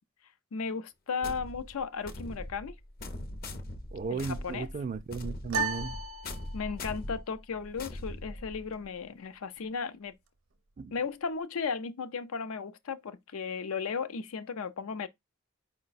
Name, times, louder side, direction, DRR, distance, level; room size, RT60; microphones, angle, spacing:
voice 1, 0.5-2.8 4.1-4.7 6.5-10.2 10.9-15.1, left 5 dB, 90° left, 0.5 m, -35 dB
sound 1, 1.2-8.9, left 1 dB, 45° left, 0.6 m, -41 dB
voice 2, 3.9-6.0 10.8-10.9, right 5 dB, 35° right, 0.3 m, -35 dB
sound 2, 5.5-7.0, right 3 dB, 65° right, 0.6 m, -34 dB
4.6 x 2.2 x 4.0 m
head